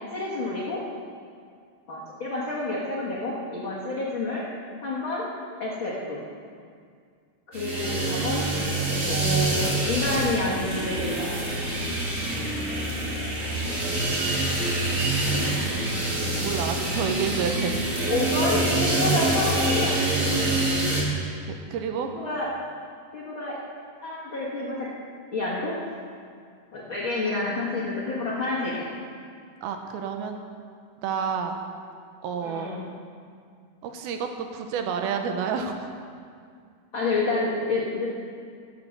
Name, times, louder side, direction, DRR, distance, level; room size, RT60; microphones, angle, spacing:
voice 1, 0.1-0.8 1.9-4.4 4.8-5.2 5.6-6.2 7.5-8.5 9.0-11.4 18.1-20.0 22.1-22.5 23.1-23.6 24.0-24.9 25.3-25.8 26.7-28.8 32.4-32.8 36.9-38.1, left 2 dB, 55° left, -6 dB, 1.4 m, -29 dB
sound 1, 7.5-21.0, right 2 dB, 40° right, 1.1 m, -26 dB
voice 2, 14.9-15.2 15.5-16.1 16.4-17.7 21.5-22.1 29.6-30.4 31.0-31.6 32.2-32.7 33.8-35.9, right 6 dB, 80° right, 5 dB, 2.6 m, -30 dB
13.5 x 7.5 x 6.5 m, 2.2 s
omnidirectional pair, 4.4 m